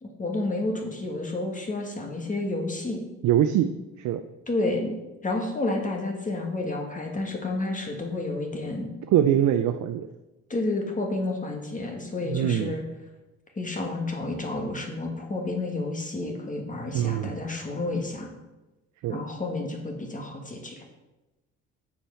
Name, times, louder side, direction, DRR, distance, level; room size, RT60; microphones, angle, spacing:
voice 1, 0.0-3.0 4.5-4.9 5.2-8.9 10.5-12.8 13.5-18.3 19.1-20.8, left 2 dB, 25° left, 2 dB, 1.6 m, -30 dB
voice 2, 3.2-3.7 4.0-4.2 9.1-10.1 12.2-12.7 16.9-17.4 19.0-19.2, right 10 dB, 70° right, 9 dB, 0.5 m, -23 dB
7.3 x 4.3 x 5.4 m, 1.0 s
cardioid pair, 90°, 30 cm